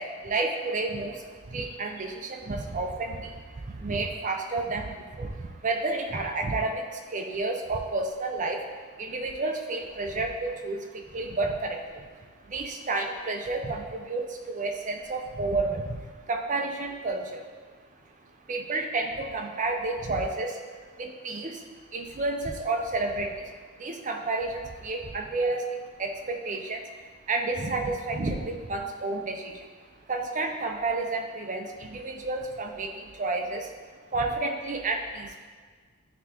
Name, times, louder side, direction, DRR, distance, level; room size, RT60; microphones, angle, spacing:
voice 1, 0.0-17.5 18.5-21.6 21.9-29.7 30.1-33.7 34.1-35.4, right 3 dB, 35° right, 3 dB, 0.5 m, -31 dB
9.5 x 3.4 x 2.9 m, 1.5 s
head